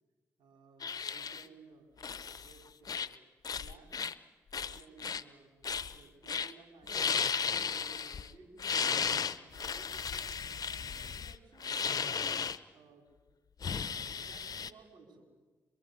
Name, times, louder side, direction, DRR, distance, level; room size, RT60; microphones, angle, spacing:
voice 1, 0.4-1.9 2.3-3.2 3.6-3.9 4.5-5.5 5.9-7.2 7.5-8.6 9.3-10.3 10.6-12.3 12.7-13.1 14.2-15.2, right 4 dB, 80° right, 3 dB, 4.8 m, -58 dB
sound 1, 0.8-1.4 2.0-2.5 2.8-3.1 3.4-4.1 4.5-5.2 5.6-6.0 6.3-6.5 6.8-8.3 8.6-12.6 13.6-14.7, left 6 dB, 55° left, 0.9 m, -35 dB
24.5 x 23.0 x 8.2 m, 1.3 s
supercardioid pair, 45°, 8 cm